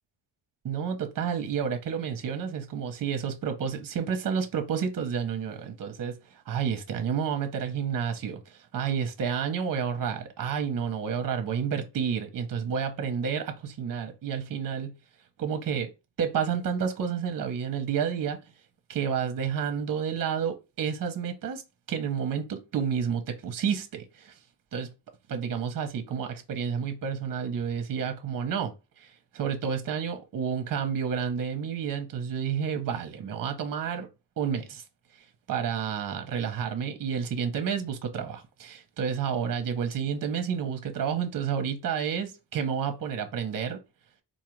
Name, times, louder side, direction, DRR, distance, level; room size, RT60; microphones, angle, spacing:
voice 1, 0.6-14.9 15.4-15.9 16.2-18.4 18.9-21.6 21.9-24.4 24.7-24.9 25.3-34.1 34.4-34.8 35.5-43.8, right 7 dB, 55° right, 0.8 m, -30 dB
4.1 x 2.4 x 3.0 m
cardioid pair, 85°, 40 cm